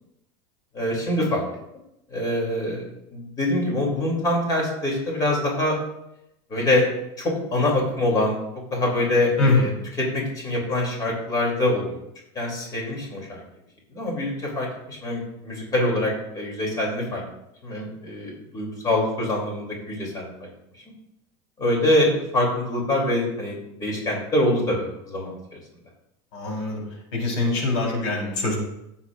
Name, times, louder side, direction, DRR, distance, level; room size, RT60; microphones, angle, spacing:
voice 1, 0.7-1.4 2.1-2.8 3.1-5.8 6.5-6.9 7.2-8.4 8.7-9.7 10.0-12.0 12.3-13.4 13.9-17.2 17.6-20.5 21.6-25.3, left 1 dB, 25° left, -1 dB, 2.8 m, -24 dB
voice 2, 9.4-9.7 26.3-26.8 27.1-28.6, left 3 dB, 85° left, -1 dB, 3.7 m, -23 dB
16.5 x 7.1 x 2.4 m, 0.84 s
supercardioid pair, 155°, 14 cm